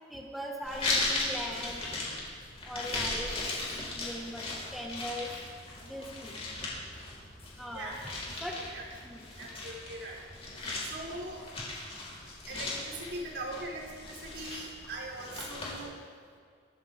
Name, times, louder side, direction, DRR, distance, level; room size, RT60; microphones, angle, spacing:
voice 1, 0.1-1.8 2.7-3.3 3.9-4.4 4.7-5.3 5.8-6.4 7.6-7.9 8.4-8.6 9.0-9.3, equal, ahead, -1 dB, 1.5 m, -39 dB
sound 1, 0.6-15.8, left 2 dB, 35° left, 4.5 m, -37 dB
voice 2, 7.7-8.2 8.5-8.8 9.4-10.2 10.9-11.4 12.5-16.0, right 2 dB, 70° right, -3 dB, 4.0 m, -41 dB
22.5 x 14.5 x 3.6 m, 2.1 s
head